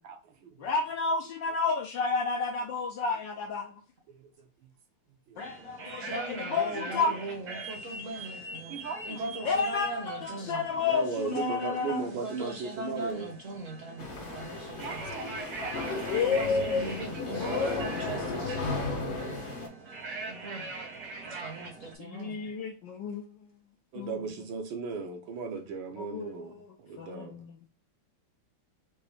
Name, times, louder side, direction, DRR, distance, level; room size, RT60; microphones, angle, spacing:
voice 1, 0.0-0.7 4.2-4.3 5.3-5.4 8.7-9.2 10.5-10.6 10.9-13.3 14.8-16.0 17.5-17.6 23.9-27.3, right 5 dB, 70° right, 1.4 m, -37 dB
voice 2, 0.6-3.7 5.4-7.2 9.4-12.1 16.1-16.9 17.4-17.9 21.8-23.5 24.0-24.3 26.0-27.7, left 5 dB, 75° left, 1.1 m, -31 dB
sound 1, 5.4-21.9, right 3 dB, 90° right, 2.3 m, -43 dB
voice 3, 6.1-8.7 9.0-10.7 12.0-15.2 16.2-19.5 20.3-20.7 21.2-22.5, right 2 dB, 50° right, 1.0 m, -40 dB
sound 2, 14.0-19.7, left 3 dB, 60° left, 0.5 m, -35 dB
5.3 x 2.6 x 3.4 m
omnidirectional pair, 2.4 m